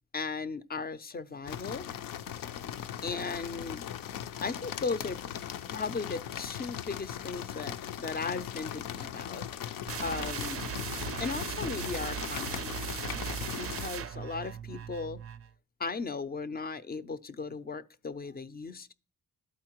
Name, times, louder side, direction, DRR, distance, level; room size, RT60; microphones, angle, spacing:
voice 1, 0.1-1.9 3.0-3.9 4.4-5.2 5.7-9.8 10.0-10.6 11.2-12.7 13.6-15.2 15.8-18.9, left 4 dB, 30° left, 0.4 m, -37 dB
sound 1, 1.5-13.9, left 10 dB, 80° left, 0.5 m, -39 dB
sound 2, 9.9-15.5, right 8 dB, 45° right, 0.4 m, -38 dB
12.0 x 4.3 x 2.9 m
cardioid pair, 80°, 33 cm